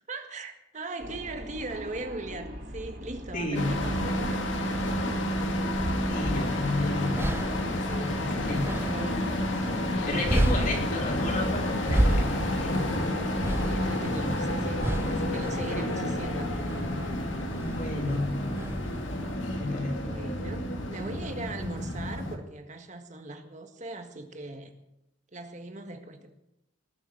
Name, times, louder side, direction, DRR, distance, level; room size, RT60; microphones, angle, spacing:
voice 1, 0.1-5.1 5.9-6.3 7.7-9.2 9.5-10.2 13.5-16.5 20.0-24.7 25.3-26.3, right 2 dB, 40° right, 6 dB, 1.8 m, -40 dB
sound 1, 1.0-14.6, equal, 55° right, 4.1 m, -42 dB
voice 2, 3.3-3.7 6.1-7.3 8.0-8.7 10.1-12.9 17.7-18.3 19.6-20.0, left 2 dB, 45° left, -1 dB, 4.4 m, -32 dB
sound 2, 3.5-22.4, left 1 dB, 75° left, 2.3 m, -30 dB
sound 3, 6.3-19.3, right 1 dB, 10° right, 0.5 m, -32 dB
20.0 x 7.2 x 8.7 m, 0.89 s
head